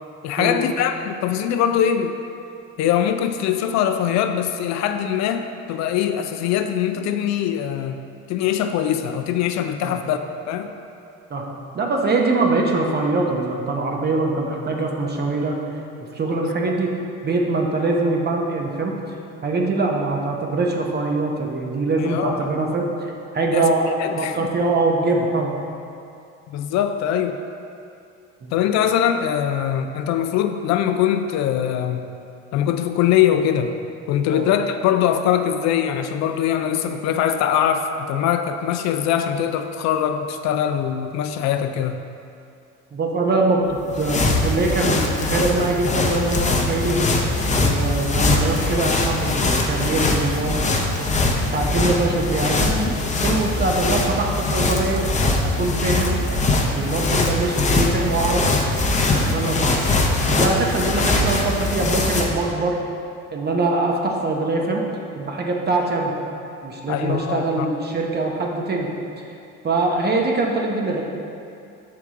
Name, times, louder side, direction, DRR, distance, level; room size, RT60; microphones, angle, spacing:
voice 1, 0.2-2.2 2.8-8.0 8.3-10.2 10.5-10.7 16.4-16.5 22.0-22.5 23.5-23.7 24.0-24.5 26.5-27.4 28.5-32.0 32.5-33.7 34.1-42.0 66.9-67.7, left 9 dB, 60° left, 7 dB, 0.4 m, -22 dB
voice 2, 11.7-15.6 16.1-16.9 17.2-18.9 19.4-22.9 23.3-23.9 24.2-25.6 28.4-28.5 34.3-34.5 42.9-47.1 47.6-50.6 51.5-52.9 53.2-55.0 55.4-56.2 56.7-58.5 59.0-59.8 60.3-62.8 63.3-64.8 65.2-66.1 66.6-68.9 69.6-71.0, right 3 dB, 30° right, 1 dB, 0.9 m, -23 dB
sound 1, 43.7-62.5, left 2 dB, 25° left, 0.8 m, -22 dB
6.9 x 4.7 x 3.7 m, 2.5 s
supercardioid pair, 100°, 31 cm